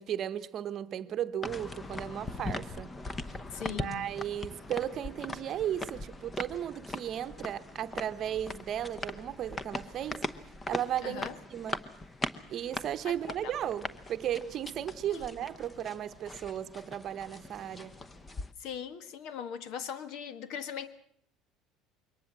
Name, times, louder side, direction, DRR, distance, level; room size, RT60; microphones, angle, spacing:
voice 1, 0.0-2.9 3.6-10.3 10.7-11.2 11.5-11.9 12.5-17.9, right 10 dB, 40° right, 0.9 m, -35 dB
sound 1, 1.4-18.5, left 2 dB, 15° left, 0.9 m, -40 dB
voice 2, 3.5-4.1 11.0-11.4 13.0-13.5 15.1-15.3 18.6-20.9, left 8 dB, 65° left, 1.5 m, -40 dB
22.5 x 18.5 x 7.5 m
cardioid pair, 140°, 0 cm